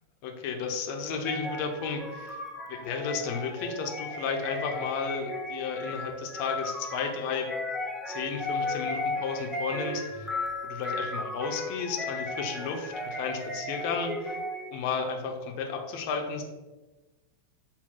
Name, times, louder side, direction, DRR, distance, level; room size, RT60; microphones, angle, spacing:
voice 1, 0.2-2.4 2.7-7.5 8.1-10.3 10.6-14.4 14.7-16.4, left 5 dB, 45° left, 3 dB, 0.7 m, -33 dB
sound 1, 1.2-14.9, left 2 dB, ahead, 0.6 m, -35 dB
5.9 x 2.2 x 3.7 m, 1.2 s
figure-of-eight pair, 90°, 0 cm